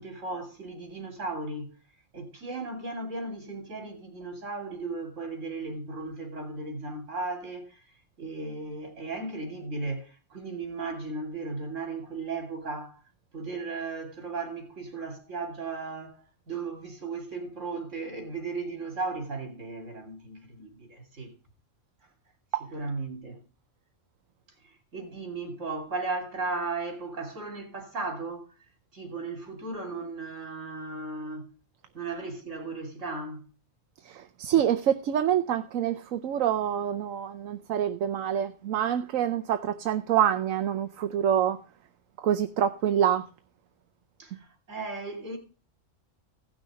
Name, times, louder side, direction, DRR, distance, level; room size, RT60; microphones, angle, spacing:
voice 1, 0.0-1.7 2.1-7.8 8.2-13.0 13.3-16.2 16.5-21.3 22.7-23.4 24.6-28.5 28.9-31.5 31.9-33.5 44.2-45.4, right 3 dB, 70° right, 3.4 m, -36 dB
voice 2, 34.1-41.6 42.2-43.2, right 10 dB, 85° right, 1.1 m, -26 dB
16.5 x 6.3 x 4.9 m
omnidirectional pair, 1.3 m